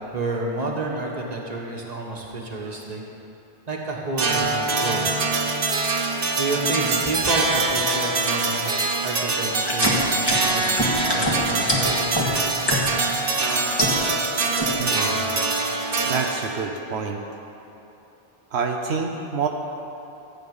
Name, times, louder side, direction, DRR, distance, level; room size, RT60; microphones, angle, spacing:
voice 1, 0.1-3.0 3.7-5.1 6.0-10.8 11.1-12.2, right 2 dB, 40° right, -1 dB, 1.5 m, -30 dB
sound 1, 4.2-16.6, right 3 dB, 60° right, 1.2 m, -24 dB
sound 2, 9.6-13.1 13.5-14.3 14.6-15.0, equal, 25° left, 1.7 m, -24 dB
voice 2, 14.8-15.3 16.0-17.2 18.5-19.5, right 5 dB, 80° right, 2 dB, 1.1 m, -27 dB
14.5 x 8.7 x 5.5 m, 3.0 s
omnidirectional pair, 1.1 m